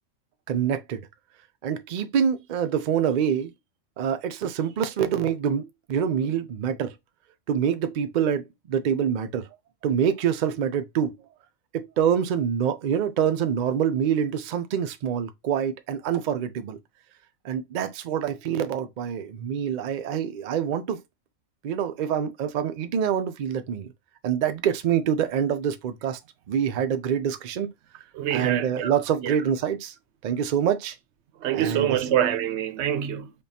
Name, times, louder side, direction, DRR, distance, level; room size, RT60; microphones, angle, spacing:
voice 1, 0.5-1.1 1.6-3.5 4.0-6.9 7.5-9.5 9.8-11.2 11.7-16.8 17.4-21.0 21.6-23.9 24.2-26.2 26.5-27.7 28.3-29.9 30.2-31.0 31.5-32.0, right 8 dB, 85° right, 0.4 m, -26 dB
voice 2, 28.1-29.0 29.2-29.4 31.4-33.3, right 10 dB, 65° right, 0.8 m, -25 dB
5.2 x 2.3 x 2.7 m
omnidirectional pair, 1.3 m